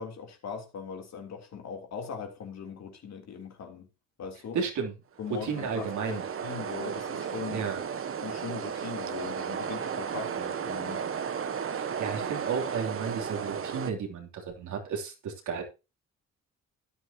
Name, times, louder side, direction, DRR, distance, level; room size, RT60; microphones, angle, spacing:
voice 1, 0.0-3.9 4.2-4.6 5.2-7.7 8.2-11.1, left 6 dB, 60° left, 3.4 m, -40 dB
voice 2, 4.5-4.9 5.3-6.2 7.5-7.8 11.7-15.6, right 6 dB, 75° right, 3.3 m, -33 dB
sound 1, 5.2-13.9, right 7 dB, 45° right, 1.2 m, -34 dB
13.5 x 10.0 x 2.9 m
cardioid pair, 90°, 30 cm